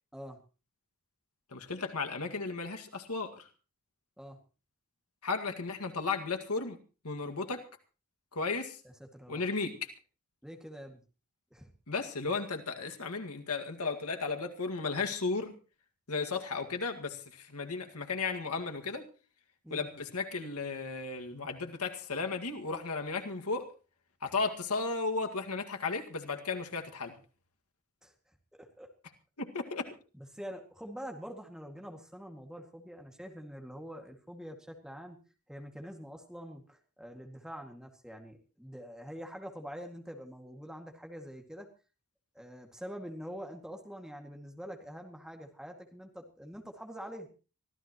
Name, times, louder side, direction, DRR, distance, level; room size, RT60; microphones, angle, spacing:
voice 1, 1.5-3.5 5.2-6.8 7.0-7.6 8.3-8.8 9.3-9.7 11.9-15.5 16.1-19.0 19.7-23.7 24.2-27.1 29.4-29.9, left 4 dB, 85° left, 5 dB, 2.0 m, -34 dB
voice 2, 9.1-9.4 10.4-11.0 11.5-11.7 19.6-19.9 28.0-28.1 28.5-28.9 30.2-35.2 35.5-41.7 42.3-47.3, equal, 5° right, 3 dB, 2.1 m, -45 dB
24.5 x 15.0 x 3.0 m, 0.34 s
head